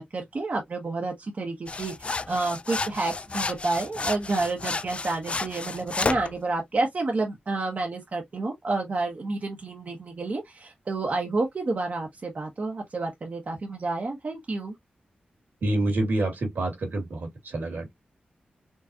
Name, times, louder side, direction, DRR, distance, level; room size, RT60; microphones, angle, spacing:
voice 1, 0.0-14.7, right 3 dB, 50° right, 1.0 m, -30 dB
sound 1, 1.7-6.3, left 3 dB, 35° left, 0.3 m, -31 dB
voice 2, 15.6-17.9, right 1 dB, 80° right, 2.1 m, -27 dB
4.6 x 2.4 x 2.7 m
cardioid pair, 75°, 3 cm